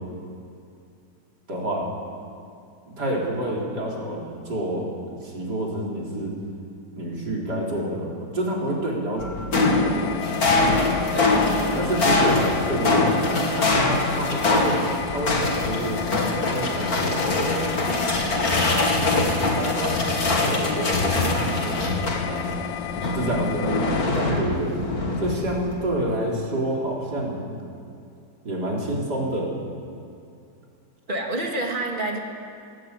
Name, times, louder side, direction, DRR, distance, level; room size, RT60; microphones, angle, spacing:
voice 1, 1.5-1.9 2.9-6.3 7.0-10.4 11.7-14.8 15.1-16.0 16.5-17.7 19.1-22.5 23.1-23.9 24.4-24.7 25.2-27.4 28.4-29.5, right 1 dB, 60° right, -3 dB, 4.7 m, -28 dB
sound 1, 9.2-22.6 22.9-25.7, left 2 dB, 55° left, 3.0 m, -23 dB
sound 2, 9.5-24.1, left 9 dB, 80° left, 1.4 m, -32 dB
voice 2, 11.1-11.5 23.0-23.4 24.1-24.4 31.1-32.2, right 2 dB, 25° right, 1 dB, 2.8 m, -29 dB
21.5 x 17.0 x 8.6 m, 2.5 s
omnidirectional pair, 2.0 m